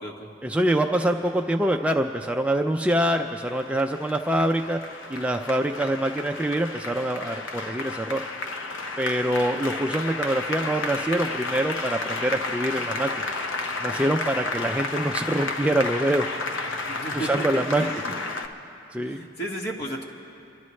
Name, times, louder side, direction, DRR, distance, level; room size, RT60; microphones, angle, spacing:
voice 1, 0.4-4.8 5.1-8.2 9.0-13.1 13.8-16.3 17.1-17.8 18.9-19.2, right 1 dB, 5° right, 3 dB, 0.4 m, -25 dB
Applause, 3.4-18.5, left 3 dB, 65° left, 0.9 m, -32 dB
voice 2, 16.9-18.1 19.0-20.0, right 1 dB, 50° left, -1 dB, 1.7 m, -34 dB
27.5 x 12.5 x 3.2 m, 2.7 s
head